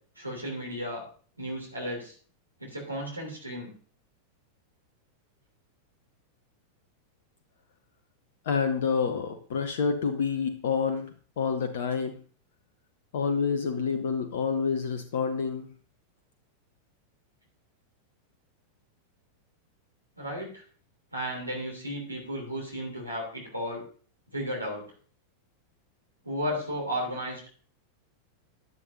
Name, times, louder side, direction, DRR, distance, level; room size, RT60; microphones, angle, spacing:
voice 1, 0.2-1.0 1.4-2.1 2.6-3.7 20.2-20.6 21.1-23.8 24.3-24.8 26.2-27.5, equal, 85° right, -1 dB, 3.0 m, -34 dB
voice 2, 8.4-12.2 13.1-15.7, left 5 dB, 55° left, 8 dB, 1.0 m, -28 dB
14.5 x 9.8 x 2.7 m, 0.42 s
figure-of-eight pair, 90°, 0 cm